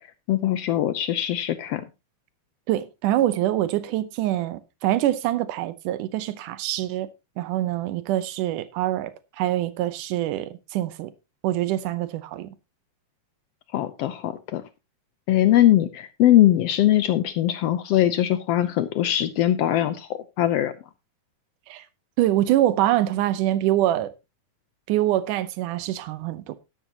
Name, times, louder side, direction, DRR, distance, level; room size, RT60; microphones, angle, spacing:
voice 1, 0.3-1.8 13.7-14.6 15.3-20.1 20.4-20.7, left 13 dB, 80° left, 1.4 m, -21 dB
voice 2, 2.7-7.1 7.4-11.1 11.4-12.6 21.7-21.9 22.2-24.1 24.9-26.6, right 13 dB, 85° right, 2.4 m, -25 dB
12.5 x 12.0 x 2.9 m
omnidirectional pair, 3.6 m